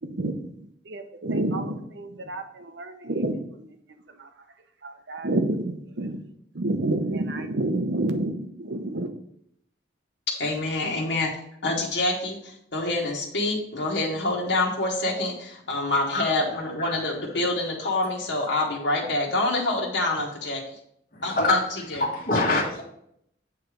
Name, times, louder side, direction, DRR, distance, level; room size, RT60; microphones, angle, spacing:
voice 1, 0.0-3.8 4.1-4.3 4.8-6.2 6.5-9.1, right 2 dB, 70° right, 8 dB, 0.8 m, -29 dB
voice 2, 10.3-11.3 11.6-20.6 21.2-22.1, left 2 dB, 75° left, -2 dB, 1.3 m, -26 dB
voice 3, 21.1-21.6 22.0-22.8, left 2 dB, 50° left, -3 dB, 1.2 m, -24 dB
8.0 x 3.3 x 5.0 m, 0.70 s
head